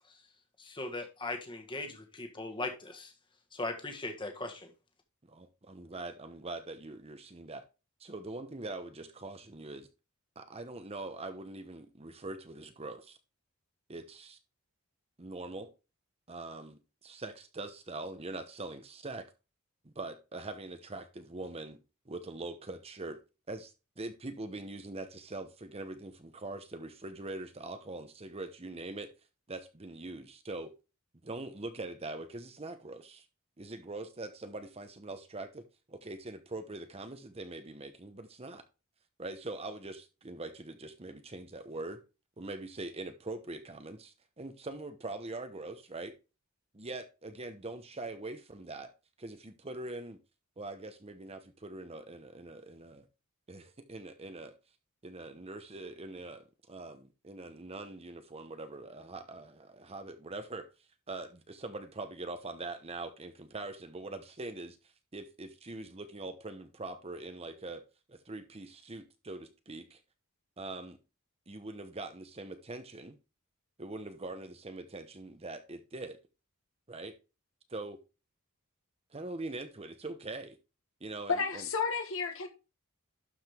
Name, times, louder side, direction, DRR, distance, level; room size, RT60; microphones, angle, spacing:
voice 1, 0.6-3.1 3.5-4.7, left 2 dB, 20° left, 1.6 m, -39 dB
voice 2, 5.3-7.6 8.0-9.9 10.4-13.2 13.9-14.4 15.2-15.7 16.3-19.3 19.8-21.8 22.1-23.2 23.5-29.1 29.5-30.7 31.2-33.2 33.6-35.6 35.9-38.6 39.2-42.0 42.4-46.1 46.7-48.9 49.2-50.2 50.6-53.1 53.5-54.5 55.0-60.7 61.1-64.8 65.1-67.8 68.1-70.0 70.6-71.0 71.5-73.2 73.8-76.2 76.9-77.1 77.7-78.0 79.1-80.6 81.0-81.7, right 2 dB, 25° right, 0.9 m, -43 dB
voice 3, 81.3-82.5, left 5 dB, 60° left, 1.5 m, -31 dB
12.0 x 5.0 x 3.6 m
head